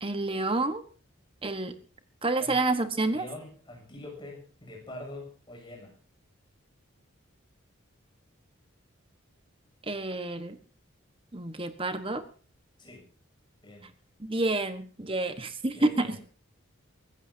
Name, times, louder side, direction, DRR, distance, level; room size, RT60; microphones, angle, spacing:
voice 1, 0.0-0.8 1.4-1.7 2.2-3.2 9.9-10.6 11.3-12.2 14.2-16.1, right 2 dB, 25° right, 9 dB, 1.4 m, -29 dB
voice 2, 3.1-6.0 12.8-13.1 13.6-13.9 15.7-16.2, left 1 dB, 20° left, 1 dB, 7.3 m, -44 dB
24.5 x 15.0 x 2.8 m, 0.40 s
head